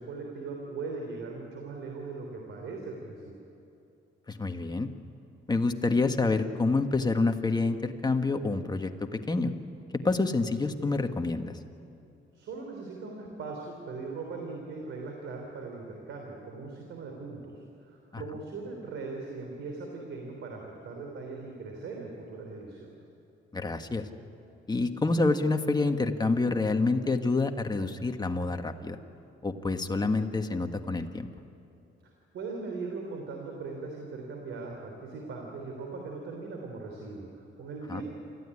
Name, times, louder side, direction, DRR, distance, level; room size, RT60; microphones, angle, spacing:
voice 1, 0.0-3.3 12.3-22.9 32.0-38.0, right 3 dB, 75° right, 1 dB, 3.6 m, -40 dB
voice 2, 4.3-4.9 5.5-9.5 10.0-11.5 18.1-18.2 23.5-24.1 24.7-29.0 29.4-31.3 37.9-38.0, left 3 dB, 20° left, 6 dB, 1.6 m, -27 dB
28.0 x 15.0 x 9.9 m, 2.8 s
cardioid pair, 90°, 20 cm